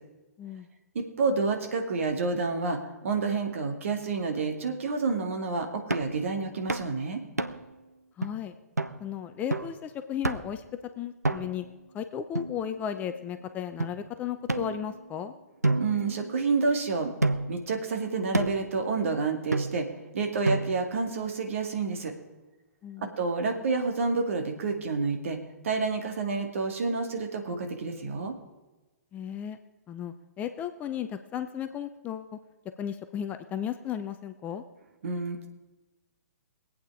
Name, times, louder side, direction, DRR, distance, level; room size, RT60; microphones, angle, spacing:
voice 1, 0.9-7.2 15.8-17.1 17.5-19.9 20.1-22.1 23.0-25.4 25.6-28.3 35.0-35.5, right 4 dB, 55° right, 4 dB, 2.2 m, -29 dB
sound 1, 5.9-6.2 6.7-6.9 7.4-7.7 8.2-8.3 8.8-9.0 9.5-9.8 10.2-10.6 11.2-11.7 12.3-13.1 13.8-13.9 14.5-15.2 15.6-16.7 17.2-17.6 18.3-18.7 19.5-20.0 20.4-21.0, right 2 dB, 85° right, 0.8 m, -30 dB
voice 2, 8.2-8.5 9.0-10.6 11.0-11.6 11.9-15.3 22.8-23.1 29.1-29.6 29.9-32.4 32.8-34.6, left 9 dB, 15° left, 9 dB, 0.6 m, -35 dB
22.0 x 8.7 x 4.8 m, 1.1 s
figure-of-eight pair, 120°, 9 cm